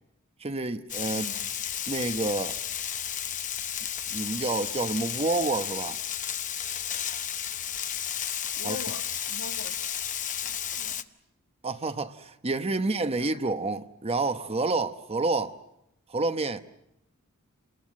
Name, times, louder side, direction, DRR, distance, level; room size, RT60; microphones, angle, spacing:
voice 1, 0.4-1.3 1.9-2.6 4.1-6.0 8.6-8.8 11.6-15.6 16.1-16.6, right 3 dB, 25° right, 1.0 m, -29 dB
Frying (food), 0.9-11.0, left 9 dB, 35° left, 0.9 m, -33 dB
voice 2, 1.1-1.5 8.6-9.8 10.7-11.0 13.2-13.3, left 4 dB, 90° left, 1.7 m, -41 dB
30.0 x 21.0 x 7.6 m
head